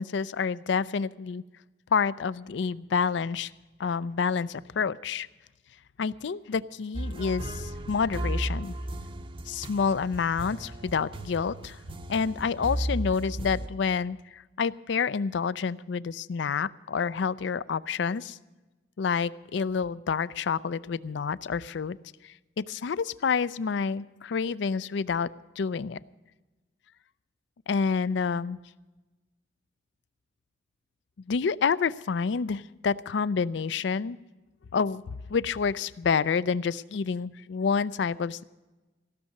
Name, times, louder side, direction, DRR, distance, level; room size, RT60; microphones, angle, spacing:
voice 1, 0.0-1.4 1.9-3.5 3.8-5.3 6.0-8.8 9.5-11.8 12.1-18.4 19.0-22.0 22.2-25.3 25.6-26.0 27.7-28.6 31.3-34.2 34.7-35.0 35.3-38.4, left 5 dB, 70° left, 18 dB, 0.4 m, -28 dB
sound 1, 6.9-13.7, right 1 dB, 25° right, 0.6 m, -35 dB
15.5 x 6.5 x 9.3 m, 1.1 s
head